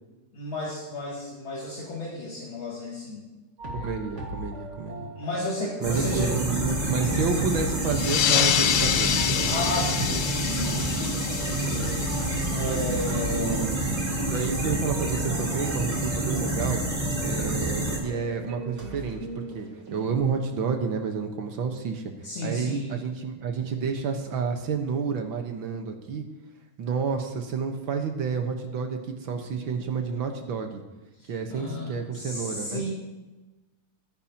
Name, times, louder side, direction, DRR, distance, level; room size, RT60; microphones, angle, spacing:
voice 1, 0.3-3.2 5.0-6.3 9.5-11.2 12.5-13.7 22.2-23.0 31.2-32.9, left 1 dB, 65° left, -7 dB, 3.4 m, -33 dB
sound 1, 3.6-20.3, right 1 dB, 35° right, 2.1 m, -38 dB
voice 2, 3.7-5.1 5.8-9.5 13.3-16.8 17.2-22.0 22.4-26.2 26.8-30.8 31.3-32.8, right 5 dB, 65° right, 4 dB, 2.0 m, -30 dB
sound 2, 5.8-18.0, right 1 dB, 15° right, 3.7 m, -28 dB
sound 3, 7.9-13.0, left 11 dB, 90° left, 1.6 m, -27 dB
21.0 x 10.5 x 2.9 m, 1.1 s
omnidirectional pair, 2.4 m